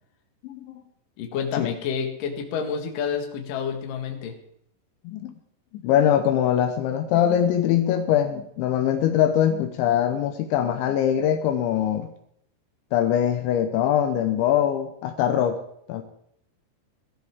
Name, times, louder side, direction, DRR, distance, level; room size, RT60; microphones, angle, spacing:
voice 1, 0.4-0.8 1.6-1.7 5.0-5.3 5.7-12.1 12.9-15.6 15.9-16.0, left 10 dB, 80° left, 7 dB, 3.1 m, -22 dB
voice 2, 1.2-4.3, left 7 dB, 55° left, 4 dB, 2.7 m, -29 dB
18.0 x 13.0 x 3.6 m, 0.71 s
omnidirectional pair, 5.5 m